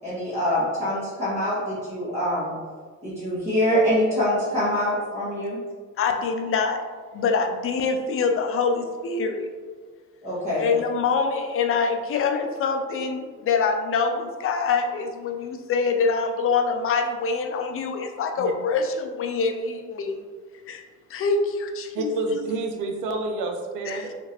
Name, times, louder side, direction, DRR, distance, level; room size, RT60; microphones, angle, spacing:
voice 1, 0.0-2.6 3.0-5.6 10.2-10.7, equal, 20° right, -12 dB, 1.1 m, -24 dB
voice 2, 6.0-6.8 7.1-9.5 10.6-20.2 20.7-20.8 21.1-22.4 23.8-24.1, left 4 dB, 45° left, 5 dB, 0.4 m, -25 dB
voice 3, 21.9-24.1, right 2 dB, 85° right, 3 dB, 0.5 m, -28 dB
2.8 x 2.5 x 2.9 m, 1.5 s
cardioid pair, 90°, 30 cm